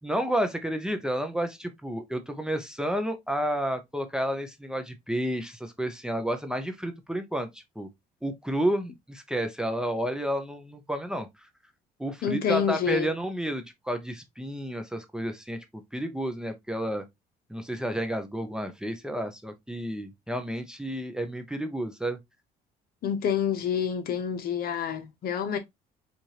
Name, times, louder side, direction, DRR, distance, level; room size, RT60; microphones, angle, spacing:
voice 1, 0.0-7.9 8.2-11.5 12.0-17.0 17.5-22.2, right 1 dB, 5° right, 0.7 m, -31 dB
voice 2, 12.2-13.1 23.0-25.6, left 8 dB, 60° left, 0.9 m, -27 dB
4.7 x 2.6 x 2.8 m
cardioid pair, 110°, 17 cm